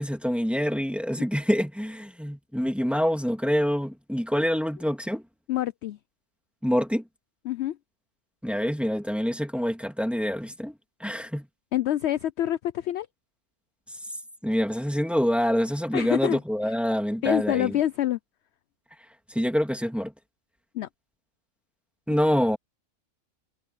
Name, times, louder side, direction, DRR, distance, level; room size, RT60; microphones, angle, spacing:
voice 1, 0.0-5.2 6.6-7.1 8.4-10.7 11.0-11.5 13.9-14.0 14.4-17.8 19.3-20.1 22.1-22.6, equal, ahead, 2.5 m, -26 dB
voice 2, 5.5-6.0 7.5-7.8 11.7-13.1 15.9-16.4 17.2-18.2 20.7-20.9, left 12 dB, 65° left, 0.7 m, -26 dB
omnidirectional pair, 1.4 m